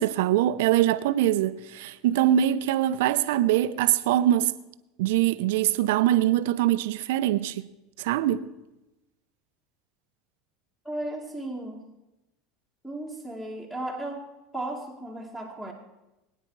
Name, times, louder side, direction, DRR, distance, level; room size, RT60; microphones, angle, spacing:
voice 1, 0.0-4.5 5.0-7.7 8.0-8.5, right 12 dB, 80° right, 0.7 m, -23 dB
voice 2, 10.9-11.9 12.8-15.7, right 1 dB, 5° left, 1.8 m, -35 dB
20.5 x 9.4 x 4.7 m
supercardioid pair, 125°, 0 cm